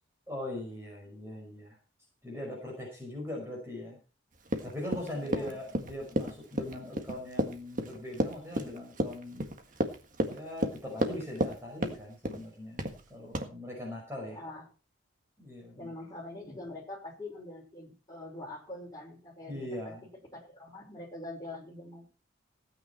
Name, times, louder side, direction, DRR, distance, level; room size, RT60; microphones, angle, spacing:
voice 1, 0.3-1.8 2.2-4.0 4.6-9.5 10.3-12.8 13.1-14.4 15.4-15.9 19.5-20.1, left 1 dB, 15° right, -2 dB, 5.5 m, -40 dB
Run, 4.5-11.6 11.8-12.4 12.8-13.0 13.3-13.5, right 1 dB, 40° right, 1.7 m, -31 dB
voice 2, 5.2-5.5 14.3-14.7 15.8-19.9 20.3-22.1, left 2 dB, 20° left, -2 dB, 5.7 m, -44 dB
17.0 x 9.4 x 4.4 m, 0.33 s
head